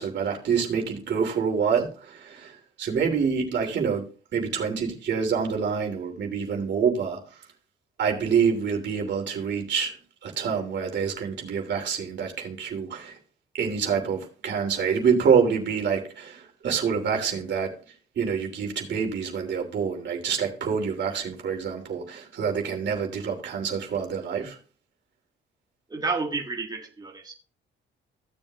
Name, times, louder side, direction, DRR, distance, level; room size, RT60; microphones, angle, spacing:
voice 1, 0.0-4.0 4.3-7.2 8.0-9.9 10.2-13.2 13.6-17.7 18.2-24.6, right 6 dB, 65° right, 3.0 m, -26 dB
voice 2, 25.9-27.3, right 4 dB, 20° right, 1.9 m, -30 dB
15.5 x 7.3 x 2.4 m
cardioid pair, 90°, 20 cm